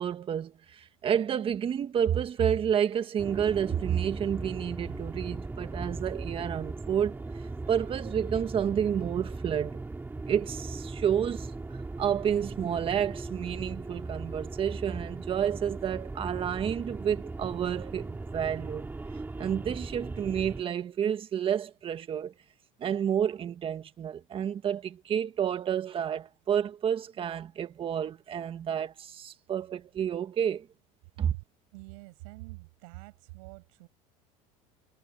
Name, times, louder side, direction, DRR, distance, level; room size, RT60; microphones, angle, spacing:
voice 1, 0.0-7.2 7.7-9.8 10.3-11.5 12.0-18.9 19.4-22.3 22.8-30.7 31.2-31.3, right 9 dB, 35° right, 1.6 m, -30 dB
sound 1, 3.2-20.6, right 3 dB, 10° right, 4.3 m, -38 dB
voice 2, 31.7-33.9, right 27 dB, 80° right, 7.3 m, -43 dB
supercardioid pair, 130°, 17 cm